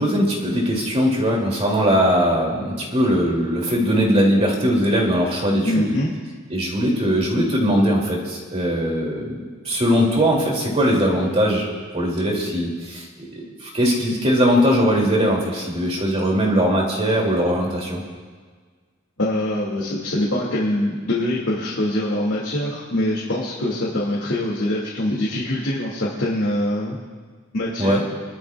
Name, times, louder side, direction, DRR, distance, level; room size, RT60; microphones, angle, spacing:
voice 1, 0.0-5.9 6.5-9.4 9.6-11.7 11.9-13.2 13.6-18.0 27.8-28.0, equal, 30° right, -2 dB, 2.8 m, -20 dB
voice 2, 5.6-6.1 19.2-27.0 27.5-28.0, left 1 dB, 75° left, -5 dB, 2.3 m, -23 dB
28.5 x 12.0 x 2.4 m, 1.5 s
head